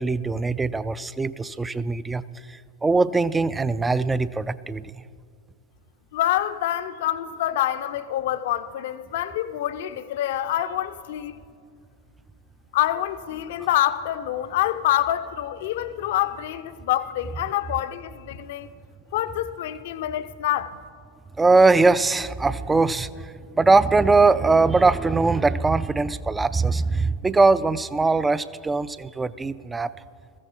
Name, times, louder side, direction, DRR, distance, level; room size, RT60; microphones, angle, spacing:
voice 1, 0.0-2.2 2.5-4.9 21.4-29.9, right 3 dB, 10° right, 0.3 m, -21 dB
voice 2, 6.1-11.4 12.7-18.7 19.1-20.8, left 13 dB, 55° left, 0.5 m, -26 dB
21.5 x 14.5 x 2.9 m
figure-of-eight pair, 90°, 0 cm